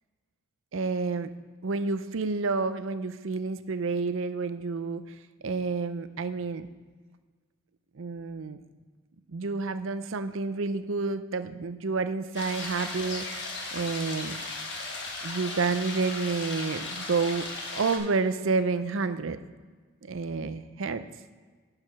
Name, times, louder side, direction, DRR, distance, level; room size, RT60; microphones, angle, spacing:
voice 1, 0.7-1.3 1.6-5.0 5.4-6.7 8.0-8.6 9.3-13.3 13.7-14.4 15.2-19.4 20.0-21.1, right 4 dB, 65° right, 12 dB, 0.5 m, -29 dB
sound 1, 12.3-18.0, left 3 dB, 55° left, 1.4 m, -36 dB
11.0 x 4.8 x 5.7 m, 1.4 s
head